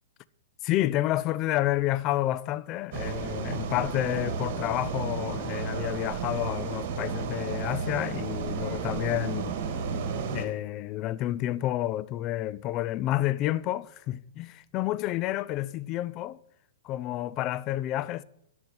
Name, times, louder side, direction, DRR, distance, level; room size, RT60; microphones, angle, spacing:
voice 1, 0.6-9.6 10.3-16.4 16.8-18.2, left 14 dB, 35° left, 0.5 m, -30 dB
sound 1, 2.9-10.5, right 5 dB, 50° right, 2.4 m, -32 dB
10.5 x 8.0 x 9.3 m
figure-of-eight pair, 115°, 0 cm